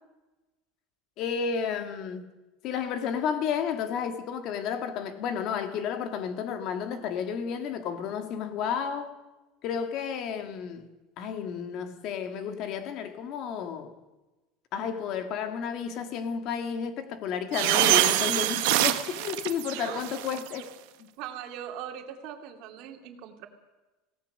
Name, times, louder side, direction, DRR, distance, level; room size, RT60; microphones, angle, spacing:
voice 1, 1.2-2.2 2.6-9.1 9.6-10.9 11.2-13.9 14.7-20.7 21.0-21.1, left 7 dB, 40° left, 2.0 m, -32 dB
sound 1, 17.5-20.6, right 16 dB, 65° right, 1.4 m, -25 dB
voice 2, 21.2-23.5, right 9 dB, 50° right, 2.6 m, -40 dB
26.0 x 17.5 x 6.6 m
cardioid pair, 175°, 0 cm